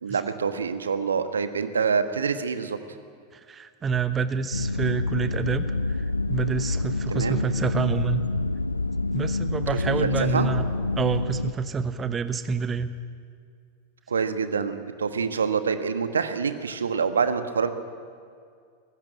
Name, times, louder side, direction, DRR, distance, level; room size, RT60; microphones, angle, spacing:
voice 1, 0.0-2.8 7.1-7.4 9.9-10.5 14.1-17.7, right 6 dB, 70° right, 10 dB, 1.2 m, -26 dB
voice 2, 3.3-6.0 6.3-8.2 9.1-10.7 10.9-12.9, right 5 dB, 20° right, 11 dB, 1.1 m, -27 dB
sound 1, 4.5-11.5, left 2 dB, 80° left, 0.5 m, -27 dB
18.0 x 15.0 x 9.9 m, 2.2 s
figure-of-eight pair, 90°, 0 cm